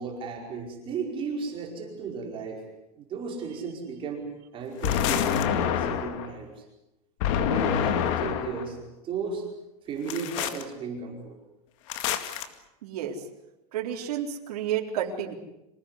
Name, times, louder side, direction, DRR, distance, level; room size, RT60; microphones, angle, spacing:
voice 1, 0.0-2.6 3.0-4.2 4.5-6.6 7.3-8.8 9.0-9.5 9.8-11.4, right 5 dB, 25° right, 1 dB, 5.0 m, -34 dB
sound 1, 4.8-6.3 7.2-8.7 10.1-10.6 11.9-12.5, left 9 dB, 55° left, 2.2 m, -27 dB
voice 2, 12.8-13.2 13.7-15.3, right 9 dB, 75° right, 1 dB, 3.9 m, -31 dB
26.0 x 18.5 x 9.8 m, 0.91 s
supercardioid pair, 160°, 20 cm